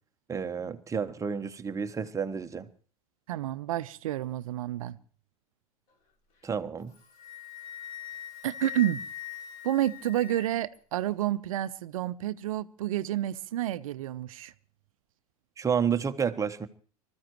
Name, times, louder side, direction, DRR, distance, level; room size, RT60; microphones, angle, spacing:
voice 1, 0.3-2.7 6.4-6.9 15.6-16.7, right 6 dB, 15° right, 1.2 m, -30 dB
voice 2, 3.3-5.0 8.4-9.0 9.6-14.5, right 13 dB, 65° right, 0.7 m, -30 dB
Wind instrument woodwind instrument, 6.8-10.8, left 9 dB, 45° left, 3.6 m, -42 dB
25.5 x 14.0 x 3.1 m
figure-of-eight pair, 90°, 19 cm